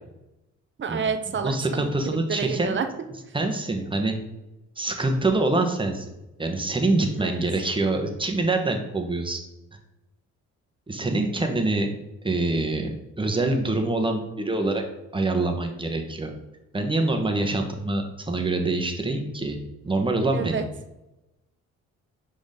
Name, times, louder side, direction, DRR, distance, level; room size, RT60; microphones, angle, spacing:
voice 1, 0.8-1.5 2.0-2.9 7.2-7.4 20.3-20.6, right 6 dB, 40° right, 8 dB, 0.9 m, -28 dB
voice 2, 1.4-2.8 3.3-4.2 4.8-6.1 6.4-9.4 10.9-11.9 12.2-12.9 13.2-14.8 15.1-16.3 16.7-19.6 19.8-20.6, right 2 dB, 15° right, 3 dB, 1.3 m, -25 dB
6.3 x 5.0 x 3.8 m, 0.95 s
cardioid pair, 90°, 30 cm